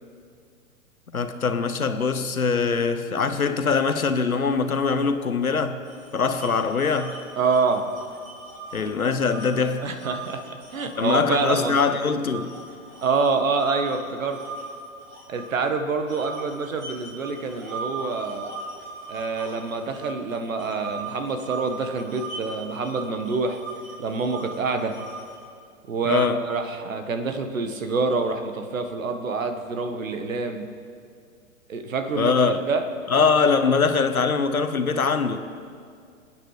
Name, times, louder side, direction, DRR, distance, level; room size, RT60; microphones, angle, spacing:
voice 1, 1.1-5.8 6.1-7.2 8.7-9.9 11.0-12.6 26.0-26.4 32.2-32.6 33.1-35.4, left 5 dB, 90° left, 1.3 m, -22 dB
sound 1, 5.8-11.9 12.2-15.7 16.1-25.5, right 3 dB, 35° right, 4.4 m, -39 dB
voice 2, 7.4-7.8 9.8-12.0 13.0-14.4 15.3-18.5 19.1-23.6 24.0-25.0 25.9-30.7 31.7-32.8, right 4 dB, 70° right, 1.7 m, -26 dB
27.0 x 9.1 x 5.0 m
figure-of-eight pair, 120°, 41 cm